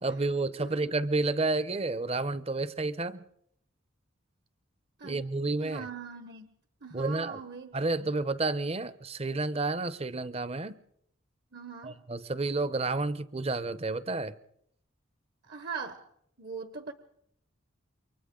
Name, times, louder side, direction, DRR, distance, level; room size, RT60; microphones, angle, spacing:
voice 1, 0.0-3.2 5.0-5.9 6.9-7.4 7.7-10.8 11.8-14.3, right 3 dB, 30° right, 0.7 m, -30 dB
voice 2, 5.6-6.5 6.8-7.7 8.0-8.1 11.5-12.0 15.4-16.1 16.4-16.9, right 5 dB, 55° right, 1.1 m, -41 dB
28.5 x 24.0 x 3.8 m
head